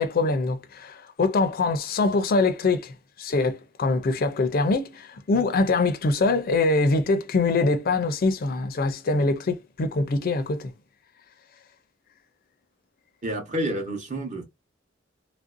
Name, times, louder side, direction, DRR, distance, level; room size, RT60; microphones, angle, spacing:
voice 1, 0.0-2.9 3.2-10.7, left 3 dB, 50° left, 0.4 m, -23 dB
voice 2, 13.2-14.5, right 1 dB, 40° right, 0.9 m, -29 dB
3.2 x 2.6 x 2.4 m
head